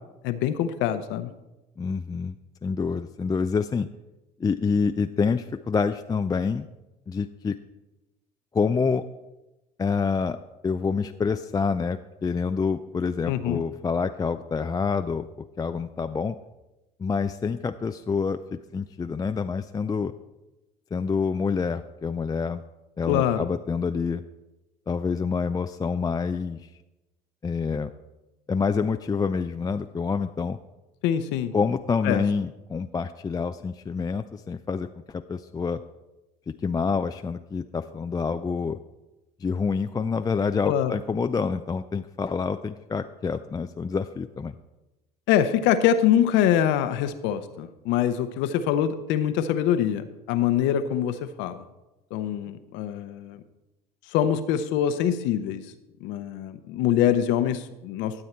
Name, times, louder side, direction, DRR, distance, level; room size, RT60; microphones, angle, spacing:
voice 1, 0.2-1.3 13.3-13.6 23.1-23.5 31.0-31.5 32.0-32.2 40.7-40.9 45.3-51.6 52.1-53.4 54.1-55.6 56.0-58.2, left 10 dB, 65° left, 11 dB, 0.8 m, -24 dB
voice 2, 1.8-2.4 2.6-3.9 4.4-6.7 7.1-7.6 8.5-9.0 9.8-10.4 10.6-15.3 15.6-16.4 17.0-20.1 20.9-22.6 23.0-24.2 24.9-26.7 27.4-27.9 28.5-30.6 31.5-35.8 36.5-38.8 39.4-44.5, left 5 dB, 20° left, 8 dB, 0.4 m, -27 dB
12.5 x 7.7 x 4.4 m, 1.0 s
hypercardioid pair, 65°, 20 cm